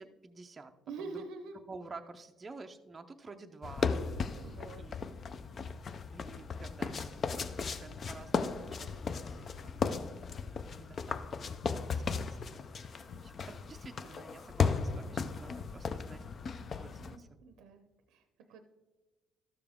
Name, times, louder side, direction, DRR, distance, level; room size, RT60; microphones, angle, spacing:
voice 1, 0.0-0.7 1.0-1.2 1.7-4.4 4.8-5.0 6.1-10.0 10.2-16.2 16.6-17.3, right 3 dB, 20° right, 5 dB, 0.5 m, -51 dB
voice 2, 0.9-1.6 4.3-4.8 8.5-8.9 13.1-13.3 17.0-18.6, right 4 dB, 90° right, 7 dB, 0.7 m, -47 dB
sound 1, 3.6-17.2, left 5 dB, 35° left, 0.4 m, -36 dB
12.5 x 6.9 x 3.5 m, 1.2 s
cardioid pair, 140°, 0 cm